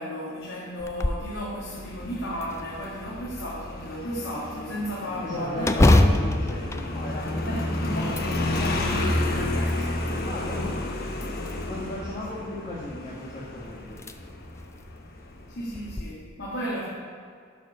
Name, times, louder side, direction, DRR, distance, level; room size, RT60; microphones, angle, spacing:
voice 1, 0.0-5.9 7.5-8.2 15.5-16.9, equal, 85° left, -7 dB, 1.8 m, -33 dB
sound 1, 0.8-1.3 1.8-1.9 2.4-3.2 5.6-7.6 8.0-8.8 9.4-10.2 11.1-11.8 13.3-13.4 13.9-14.1 14.6-14.7 15.8-16.0, left 1 dB, 15° left, 0.3 m, -24 dB
Motorcycle, 1.7-16.0, left 1 dB, 50° left, 1.1 m, -31 dB
voice 2, 5.1-11.0 11.7-14.0, left 1 dB, 35° left, -8 dB, 1.5 m, -36 dB
11.5 x 5.0 x 5.6 m, 2.2 s
head